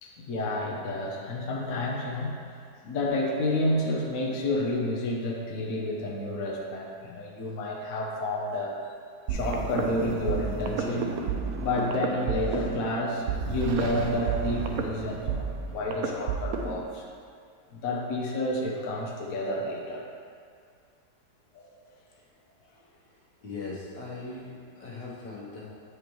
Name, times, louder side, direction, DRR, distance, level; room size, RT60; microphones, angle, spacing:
voice 1, 0.0-2.4 2.8-8.8 9.3-11.2 11.6-17.1 17.7-20.1 21.5-21.7, left 1 dB, 60° left, -2 dB, 1.1 m, -30 dB
sound 1, 9.3-16.8, right 5 dB, 70° right, 0.9 m, -31 dB
voice 2, 23.4-25.7, left 3 dB, 85° left, -6 dB, 1.9 m, -39 dB
8.4 x 5.1 x 3.1 m, 2.2 s
omnidirectional pair, 1.8 m